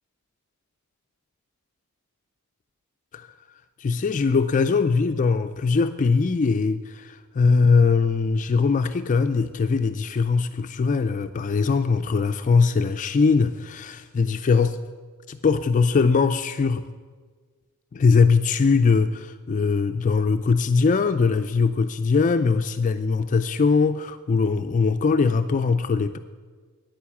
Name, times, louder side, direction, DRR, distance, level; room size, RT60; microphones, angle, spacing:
voice 1, 3.8-14.8 15.3-16.8 17.9-26.2, left 4 dB, 35° left, 9 dB, 0.3 m, -21 dB
9.5 x 9.3 x 7.2 m, 1.5 s
head